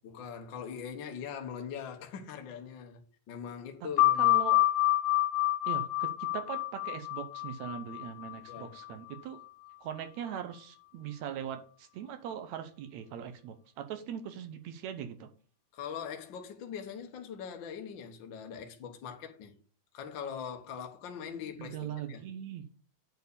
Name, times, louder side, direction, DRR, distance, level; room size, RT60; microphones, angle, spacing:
voice 1, 0.0-3.0 3.3-4.3 8.5-8.8 15.7-19.6 19.9-22.2, left 7 dB, 65° left, 1.2 m, -42 dB
sound 1, 4.0-9.2, left 15 dB, 85° left, 2.1 m, -28 dB
voice 2, 4.2-4.6 5.7-9.4 9.8-15.3 21.3-22.7, right 9 dB, 70° right, 1.9 m, -41 dB
8.1 x 4.5 x 6.9 m
omnidirectional pair, 3.6 m